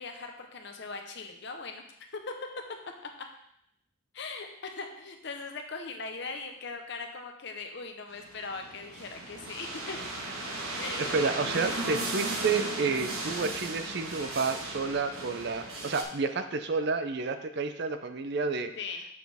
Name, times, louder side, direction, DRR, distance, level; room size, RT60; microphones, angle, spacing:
voice 1, 0.0-1.8 2.3-2.4 4.1-10.0 10.8-11.1 18.8-19.1, left 4 dB, 55° left, 4 dB, 0.9 m, -40 dB
sound 1, 8.2-16.0, right 2 dB, 85° right, 1.2 m, -36 dB
voice 2, 11.0-18.7, right 4 dB, 50° right, 9 dB, 0.5 m, -30 dB
6.9 x 6.1 x 3.5 m, 0.76 s
head